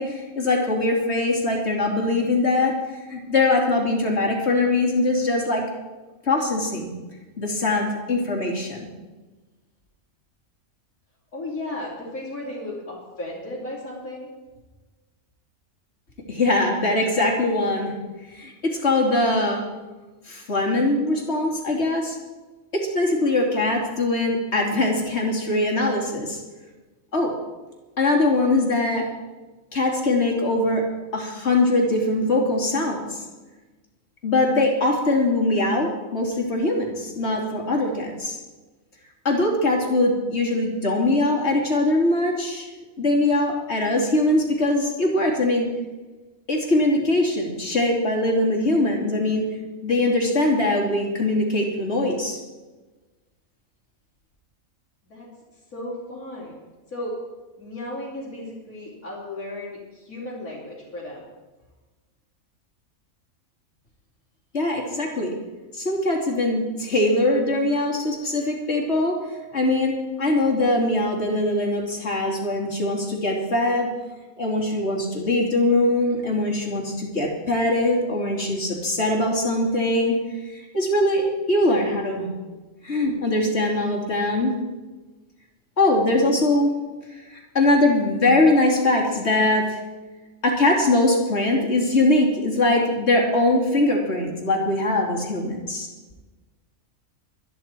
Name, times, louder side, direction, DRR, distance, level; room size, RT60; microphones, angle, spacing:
voice 1, 0.0-2.7 3.1-5.6 6.2-6.9 7.4-8.9 16.3-17.9 18.3-19.6 20.3-22.2 22.7-26.4 27.1-27.3 28.0-29.1 29.7-30.8 31.1-33.2 34.2-38.4 39.2-42.7 43.0-45.7 46.5-52.4 64.5-65.3 65.7-69.2 69.5-73.9 74.4-80.2 80.5-82.3 82.8-84.5 85.8-86.7 87.1-89.8 90.4-95.9, left 2 dB, 50° left, -1 dB, 3.2 m, -22 dB
voice 2, 11.3-14.3 55.0-55.3 55.7-56.5 56.9-57.1 57.6-61.3, left 1 dB, 85° left, -9 dB, 3.9 m, -35 dB
24.5 x 10.0 x 4.5 m, 1.2 s
omnidirectional pair, 1.5 m